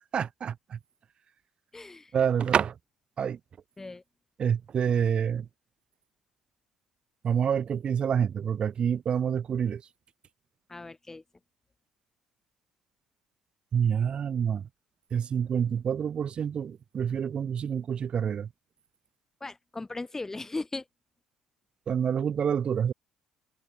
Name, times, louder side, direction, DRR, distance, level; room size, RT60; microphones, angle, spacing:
voice 1, 0.1-0.8 2.1-2.7 3.2-3.4 4.4-5.5 7.2-9.8 13.7-14.7 15.1-18.5 21.9-22.9, right 8 dB, 40° right, 1.7 m, -27 dB
voice 2, 1.7-2.1 3.8-4.0 10.7-11.2 19.4-20.8, left 3 dB, 15° left, 1.2 m, -37 dB
figure-of-eight pair, 50°, 3 cm